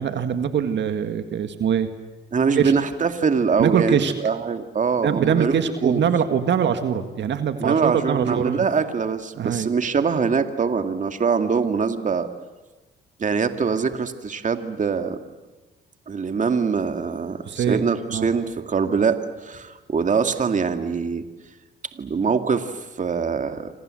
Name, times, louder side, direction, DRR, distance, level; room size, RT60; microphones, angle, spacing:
voice 1, 0.0-1.9 2.6-2.7 3.6-4.1 5.0-8.7 9.4-9.7 17.5-17.8 18.1-18.4, right 8 dB, 65° right, 8 dB, 2.0 m, -23 dB
voice 2, 2.3-6.0 7.6-12.3 13.2-15.2 16.1-21.2 21.9-23.7, right 5 dB, 40° right, 7 dB, 2.3 m, -23 dB
28.0 x 26.0 x 7.8 m, 1.2 s
cardioid pair, 90°, 20 cm